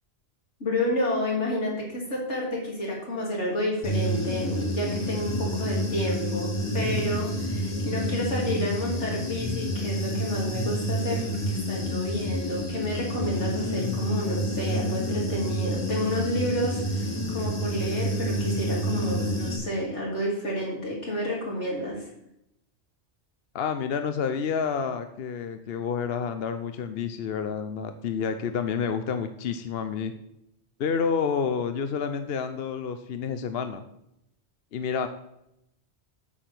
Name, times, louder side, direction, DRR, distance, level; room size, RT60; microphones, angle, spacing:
voice 1, 0.6-22.1, left 1 dB, 90° left, -3 dB, 3.4 m, -30 dB
Human voice / Buzz, 3.8-19.6, equal, 25° left, 1.5 m, -29 dB
voice 2, 23.5-30.1 30.8-33.8 34.7-35.1, left 6 dB, 65° left, 9 dB, 0.9 m, -29 dB
8.6 x 7.2 x 6.1 m, 0.81 s
omnidirectional pair, 1.2 m